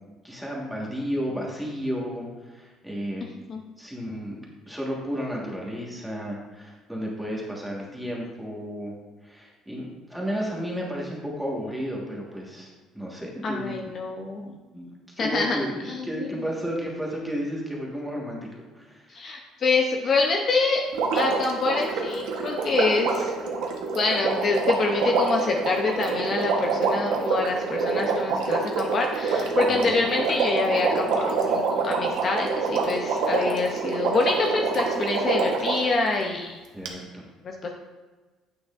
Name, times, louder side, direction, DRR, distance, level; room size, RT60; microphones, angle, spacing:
voice 1, 0.2-3.3 3.8-4.4 4.7-8.9 9.2-13.9 14.7-19.2 29.7-29.9 36.7-37.2, equal, ahead, -3 dB, 1.4 m, -33 dB
voice 2, 13.4-14.6 15.2-16.3 19.1-20.8 21.1-23.3 23.9-36.6 37.4-37.7, left 3 dB, 35° left, 1 dB, 0.5 m, -26 dB
Water, 20.9-35.9 36.9-37.0, right 4 dB, 75° right, 1.0 m, -26 dB
8.6 x 6.1 x 2.5 m, 1.3 s
cardioid pair, 145°, 0 cm